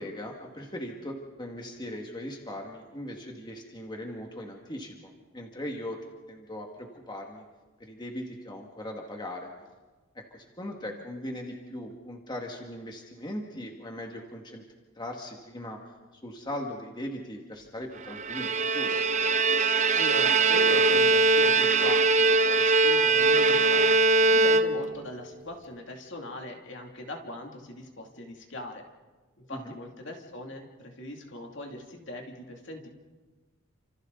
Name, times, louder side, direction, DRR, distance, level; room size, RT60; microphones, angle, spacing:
voice 1, 0.0-6.0 6.3-7.4 7.8-9.5 10.1-14.6 15.0-15.8 16.1-19.0 29.5-29.7, left 1 dB, 20° left, 1 dB, 2.1 m, -39 dB
Bowed string instrument, 18.1-25.1, right 3 dB, 35° right, 0.8 m, -22 dB
voice 2, 19.9-23.9 24.3-28.9 29.4-32.9, left 1 dB, 55° left, 2 dB, 2.8 m, -40 dB
30.0 x 27.0 x 4.1 m, 1.3 s
head